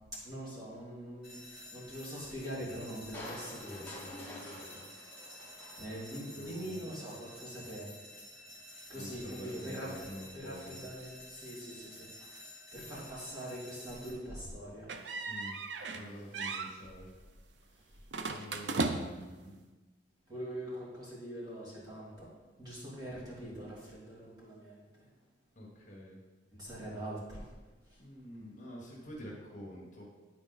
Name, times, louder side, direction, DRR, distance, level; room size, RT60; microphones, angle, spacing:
voice 1, 0.1-4.8 5.8-7.9 8.9-10.1 10.3-12.3 12.7-14.9 20.3-22.3 22.6-25.1 26.5-27.5 27.9-28.0, equal, 20° right, -8 dB, 2.6 m, -43 dB
sound 1, 1.2-14.1, left 1 dB, 5° right, 2.4 m, -51 dB
Crushing, 3.1-6.5 7.0-7.1, left 1 dB, 10° left, 1.0 m, -48 dB
voice 2, 6.3-6.9 8.9-10.8 15.3-15.6 15.9-17.1 17.8-19.6 25.5-26.2 28.0-30.0, equal, 40° left, -3 dB, 1.4 m, -47 dB
sound 2, 14.9-16.1 16.3-16.7 18.1-19.3, right 3 dB, 70° right, 0.5 m, -36 dB
10.0 x 4.2 x 4.1 m, 1.2 s
head